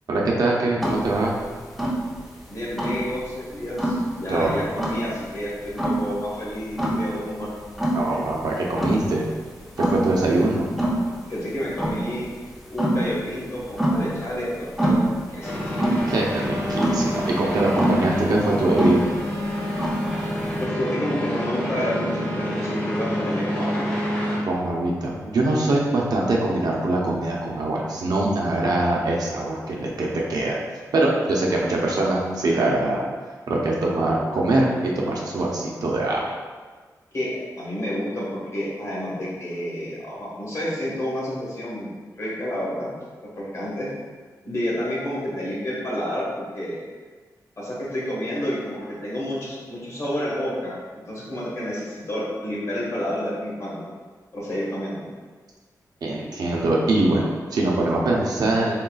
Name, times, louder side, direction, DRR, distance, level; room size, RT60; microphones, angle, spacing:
voice 1, 0.1-1.3 4.3-4.6 7.9-9.3 9.8-10.7 16.1-19.1 24.5-30.6 30.9-33.0 33.5-36.3 56.0-58.7, right 2 dB, 70° right, -3 dB, 0.7 m, -23 dB
sound 1, 0.8-20.6, right 1 dB, ahead, 0.6 m, -26 dB
voice 2, 2.5-7.5 8.1-8.2 10.3-10.7 11.3-12.2 12.7-15.6 20.6-23.8 37.1-37.3 37.6-42.9 43.4-43.9 44.4-46.8 47.6-53.8 54.3-55.0, equal, 45° left, -6 dB, 1.3 m, -29 dB
sound 2, 15.4-24.4, equal, 20° left, 1.1 m, -27 dB
3.9 x 3.8 x 2.3 m, 1.4 s
wide cardioid pair, 135°, 7 cm